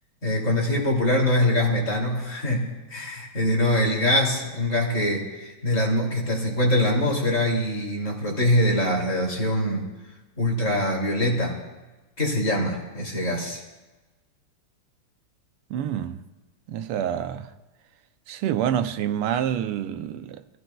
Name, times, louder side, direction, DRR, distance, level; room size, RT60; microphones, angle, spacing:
voice 1, 0.2-9.9 10.4-11.6 12.2-13.6, left 1 dB, 35° left, 3.0 m, -23 dB
voice 2, 15.7-16.2 16.7-17.5 18.3-20.4, right 10 dB, 85° right, 1.6 m, -27 dB
24.5 x 15.5 x 2.3 m
omnidirectional pair, 2.4 m